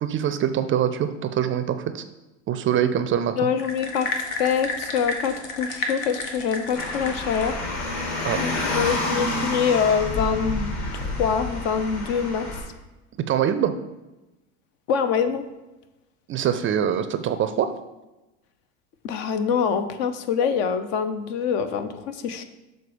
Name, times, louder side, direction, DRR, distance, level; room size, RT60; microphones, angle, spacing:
voice 1, 0.0-2.0 2.5-3.5 8.2-8.4 13.3-13.7 16.3-17.7, right 9 dB, 30° right, 11 dB, 0.4 m, -24 dB
voice 2, 3.4-4.1 4.4-7.6 8.3-12.5 14.9-15.4 19.0-22.4, left 7 dB, 65° left, 10 dB, 0.8 m, -25 dB
sound 1, 3.6-7.6, left 3 dB, 90° left, 1.1 m, -31 dB
Car, 6.8-12.6, left 2 dB, 50° left, 2.2 m, -29 dB
6.7 x 4.0 x 5.0 m, 1.0 s
supercardioid pair, 95°, 40 cm